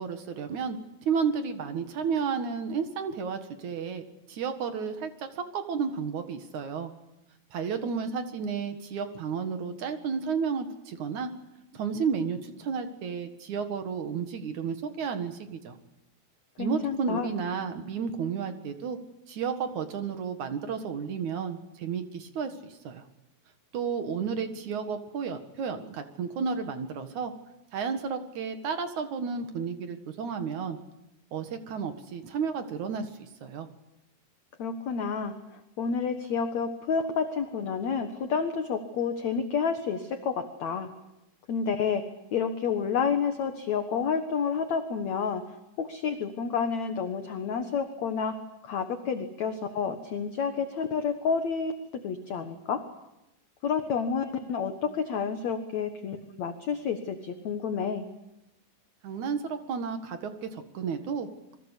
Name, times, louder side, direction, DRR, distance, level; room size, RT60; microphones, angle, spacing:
voice 1, 0.0-6.9 7.5-11.3 11.7-15.8 16.6-19.0 19.3-23.0 23.7-27.3 27.7-30.8 31.3-33.7 59.0-61.5, right 6 dB, 55° right, 8 dB, 2.4 m, -32 dB
voice 2, 16.6-17.3 34.6-35.3 35.8-40.9 41.5-42.0 42.3-45.4 45.8-48.4 48.6-51.8 52.0-52.8 53.6-58.1, left 6 dB, 60° left, 7 dB, 1.9 m, -29 dB
27.5 x 23.0 x 8.4 m, 0.91 s
omnidirectional pair, 5.1 m